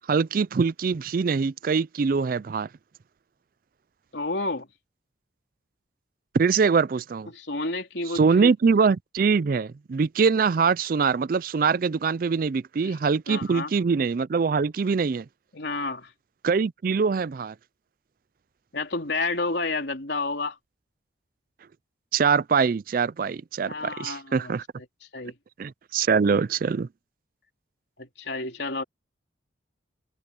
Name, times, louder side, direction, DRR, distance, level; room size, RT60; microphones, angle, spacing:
voice 1, 0.1-2.7 6.3-7.3 8.1-15.3 16.4-17.5 22.1-24.6 25.6-26.9, right 5 dB, 50° right, 0.4 m, -23 dB
voice 2, 4.1-4.7 7.3-8.5 12.8-12.9 13.3-13.7 15.5-16.1 18.7-20.6 23.7-24.8 25.1-25.4 28.0-28.8, left 3 dB, 65° left, 3.4 m, -30 dB
head